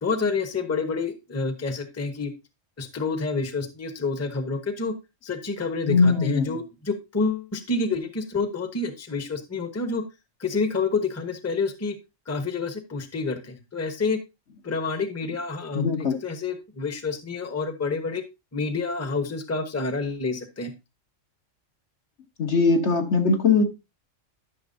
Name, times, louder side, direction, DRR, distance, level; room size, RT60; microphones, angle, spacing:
voice 1, 0.0-2.3 2.8-4.9 5.2-10.0 10.4-12.0 12.3-14.2 14.6-18.2 18.5-20.7, left 4 dB, 15° left, 0.9 m, -28 dB
voice 2, 5.9-6.6 15.7-16.2 22.4-23.6, left 4 dB, 60° left, 1.5 m, -21 dB
12.0 x 6.1 x 2.7 m
omnidirectional pair, 1.3 m